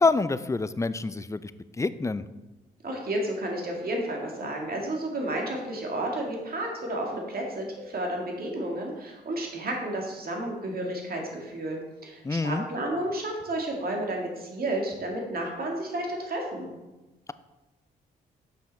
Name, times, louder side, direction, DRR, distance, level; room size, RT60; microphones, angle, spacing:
voice 1, 0.0-1.5 1.8-2.2 12.2-12.6, left 3 dB, 15° left, 14 dB, 0.4 m, -26 dB
voice 2, 2.8-16.7, right 1 dB, 55° right, 0 dB, 2.2 m, -31 dB
7.2 x 5.7 x 4.3 m, 1.1 s
supercardioid pair, 50°, 19 cm